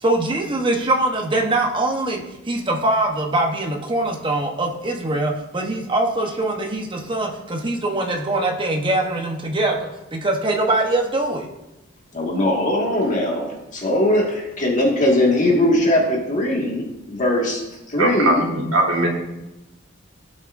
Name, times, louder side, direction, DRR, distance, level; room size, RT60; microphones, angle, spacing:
voice 1, 0.0-11.5, right 2 dB, 25° right, 1 dB, 1.0 m, -22 dB
voice 2, 12.1-17.6 17.9-18.5, left 1 dB, 35° left, -2 dB, 1.9 m, -20 dB
voice 3, 18.0-19.1, right 1 dB, 80° right, -1 dB, 1.8 m, -19 dB
16.0 x 5.9 x 2.6 m, 0.96 s
head